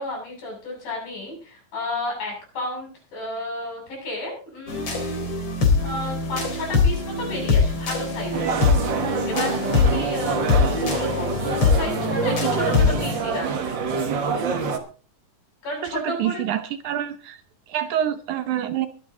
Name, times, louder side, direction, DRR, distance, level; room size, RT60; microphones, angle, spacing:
voice 1, 0.0-5.2 5.8-13.8 15.6-16.4, left 1 dB, 80° left, -1 dB, 9.0 m, -32 dB
sound 1, 4.7-13.2, left 5 dB, 45° left, 3.8 m, -23 dB
sound 2, 8.3-14.8, right 5 dB, 50° right, 1.4 m, -26 dB
voice 2, 15.8-17.4 17.7-18.9, right 10 dB, 70° right, 11 dB, 2.1 m, -26 dB
22.0 x 8.7 x 3.9 m, 0.39 s
omnidirectional pair, 4.0 m